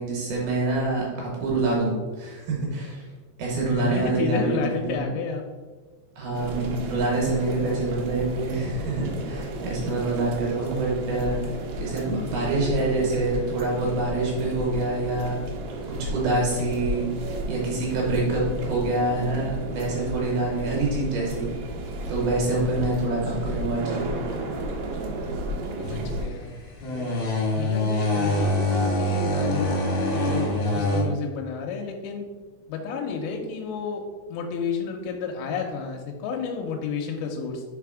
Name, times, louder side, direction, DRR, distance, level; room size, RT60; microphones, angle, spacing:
voice 1, 0.0-3.0 3.4-5.1 6.2-15.4 15.9-17.1 17.4-21.5 22.1-24.1, right 2 dB, 70° right, -3 dB, 2.5 m, -26 dB
voice 2, 3.7-5.4 25.8-26.5 27.5-32.3 32.7-34.0 34.3-37.6, left 5 dB, 90° left, 1 dB, 3.2 m, -31 dB
sound 1, 6.3-26.3, right 1 dB, 85° right, 2.1 m, -33 dB
sound 2, 25.8-31.0, left 1 dB, 70° left, 1.7 m, -25 dB
6.8 x 3.4 x 4.8 m, 1.3 s
omnidirectional pair, 5.6 m